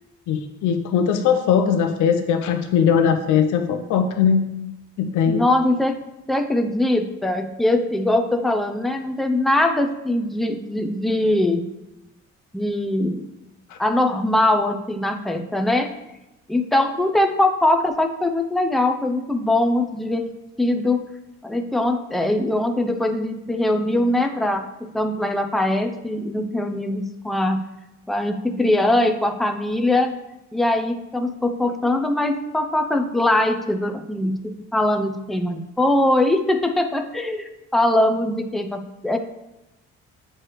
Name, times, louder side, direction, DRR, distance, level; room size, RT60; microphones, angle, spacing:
voice 1, 0.3-4.5 5.0-5.4, left 7 dB, 80° left, 7 dB, 0.6 m, -20 dB
voice 2, 5.3-6.0 6.3-11.7 12.5-13.3 13.8-15.9 16.5-20.3 20.6-21.0 21.4-27.6 28.1-30.1 30.5-39.2, left 1 dB, ahead, 5 dB, 0.5 m, -22 dB
7.7 x 3.2 x 4.6 m, 0.96 s
cardioid pair, 90°, 30 cm